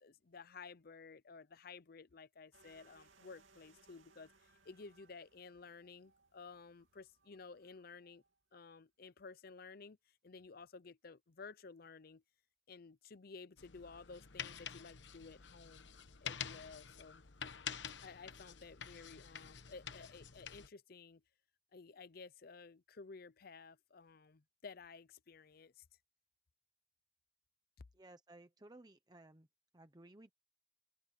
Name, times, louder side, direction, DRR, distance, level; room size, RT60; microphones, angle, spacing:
voice 1, 0.0-8.2 8.5-12.2 12.7-15.9 16.2-17.2 18.0-21.2 21.7-25.8, left 4 dB, 50° left, 0.6 m, -54 dB
sound 1, 2.5-8.7, right 4 dB, 85° right, 2.7 m, -69 dB
sound 2, 13.6-20.7, left 8 dB, 65° left, 1.1 m, -48 dB
voice 2, 27.9-29.5 29.7-30.3, right 2 dB, 20° right, 0.9 m, -58 dB
open air
head